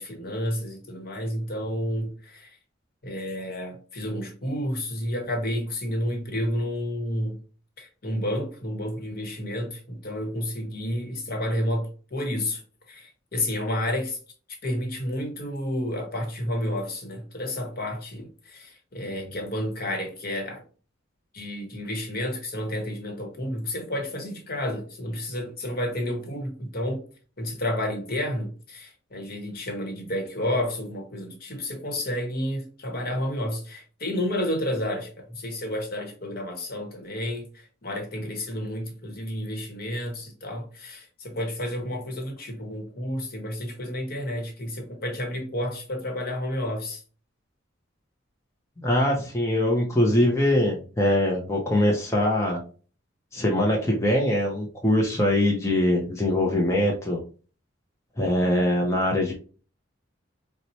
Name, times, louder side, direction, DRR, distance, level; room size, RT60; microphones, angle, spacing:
voice 1, 0.0-2.6 3.0-7.4 7.8-12.6 12.9-14.2 14.6-20.6 21.3-27.0 27.4-47.0, left 1 dB, 50° left, 0.9 m, -30 dB
voice 2, 48.8-52.6 53.3-57.2 58.2-59.3, left 1 dB, 15° left, 0.5 m, -22 dB
4.2 x 2.1 x 2.7 m
head